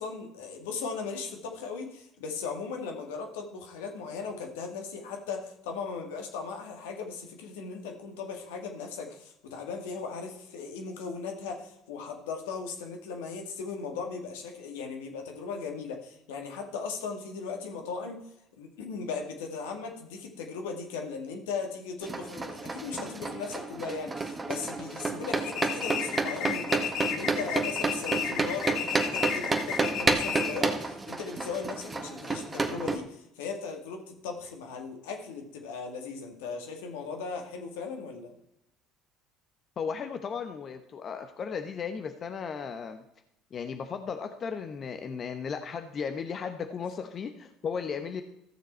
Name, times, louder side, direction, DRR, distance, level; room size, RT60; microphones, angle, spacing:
voice 1, 0.0-18.3 18.6-38.3, left 5 dB, 80° left, 3 dB, 1.9 m, -37 dB
sound 1, 22.0-33.0, right 3 dB, 20° right, 1.6 m, -31 dB
sound 2, 25.4-30.7, left 8 dB, 60° left, 1.4 m, -33 dB
voice 2, 39.8-43.0 43.5-48.2, left 6 dB, 45° left, 7 dB, 0.9 m, -35 dB
14.5 x 6.9 x 4.4 m, 0.82 s
hypercardioid pair, 65°, 0 cm